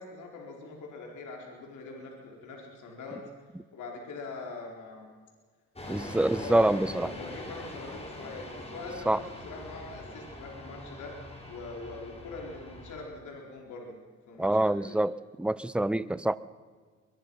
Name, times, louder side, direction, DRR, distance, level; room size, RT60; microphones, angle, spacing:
voice 1, 0.0-3.2 3.7-5.1 5.8-14.0 14.3-15.0, left 3 dB, 75° left, 0 dB, 4.7 m, -43 dB
sound 1, 5.8-13.0, left 1 dB, 20° left, 5.1 m, -43 dB
voice 2, 5.9-7.1 9.1-9.2 14.4-15.1 15.4-16.4, right 1 dB, 5° right, 17 dB, 0.7 m, -26 dB
23.0 x 21.5 x 5.7 m, 1.5 s
cardioid pair, 90°, 30 cm